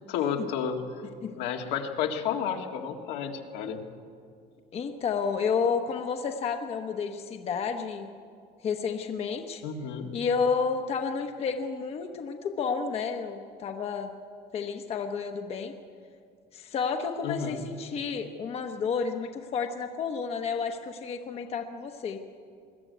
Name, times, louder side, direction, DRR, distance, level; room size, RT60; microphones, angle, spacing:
voice 1, 0.1-0.8 1.4-3.9 9.6-10.1 17.2-17.6, left 7 dB, 75° left, 3 dB, 1.9 m, -31 dB
voice 2, 4.7-8.1 8.6-9.6 10.1-14.1 14.5-15.7 16.5-22.2, left 5 dB, 35° left, 5 dB, 1.1 m, -31 dB
21.5 x 13.0 x 9.4 m, 2.2 s
cardioid pair, 150°, 18 cm